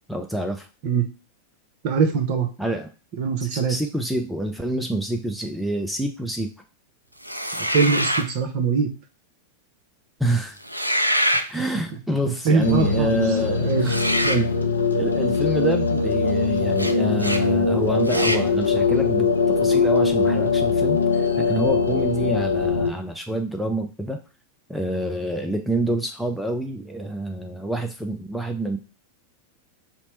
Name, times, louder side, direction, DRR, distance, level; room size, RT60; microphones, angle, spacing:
voice 1, 0.1-0.7 2.6-2.9 3.4-6.5 10.2-10.6 11.5-14.0 15.0-19.3 19.6-24.2 24.7-28.8, right 1 dB, ahead, 4 dB, 0.4 m, -27 dB
voice 2, 1.8-2.5 3.2-3.7 7.6-8.9 12.4-13.2 13.6-13.9 14.2-14.5, right 5 dB, 45° right, 5 dB, 0.8 m, -22 dB
sound 1, 7.2-8.3 10.6-11.5 13.8-14.4 16.8-16.9 17.2-17.4 18.1-18.4, equal, 90° right, 0.3 m, -24 dB
sound 2, 12.6-22.9, left 4 dB, 75° left, 0.5 m, -21 dB
4.2 x 2.1 x 4.4 m, 0.33 s
figure-of-eight pair, 90°, 0 cm